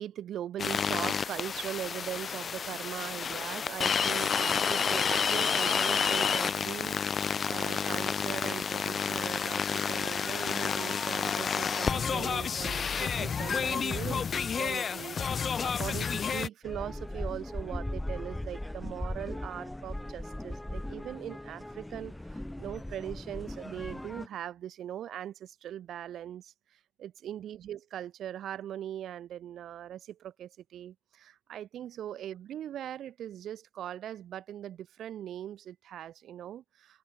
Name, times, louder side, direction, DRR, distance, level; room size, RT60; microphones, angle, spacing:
voice 1, 0.0-37.0, right 11 dB, 70° right, 5.0 m, -40 dB
sound 1, 0.6-16.5, left 6 dB, 45° left, 1.2 m, -30 dB
sound 2, 16.6-24.3, left 1 dB, 10° left, 2.1 m, -38 dB
cardioid pair, 90°, 0 cm